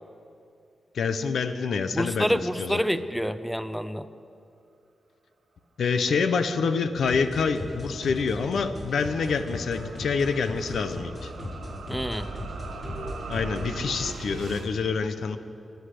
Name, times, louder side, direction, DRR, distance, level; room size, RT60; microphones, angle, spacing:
voice 1, 0.9-2.8 5.8-11.3 13.3-15.4, left 5 dB, 80° left, 10 dB, 0.8 m, -27 dB
voice 2, 1.9-4.1 11.9-12.3, equal, ahead, 13 dB, 0.6 m, -27 dB
sound 1, 6.8-14.7, right 3 dB, 90° right, 1.3 m, -41 dB
sound 2, 7.0-13.6, left 1 dB, 50° left, 5.0 m, -38 dB
24.0 x 8.1 x 6.6 m, 2.6 s
wide cardioid pair, 100°, 0 cm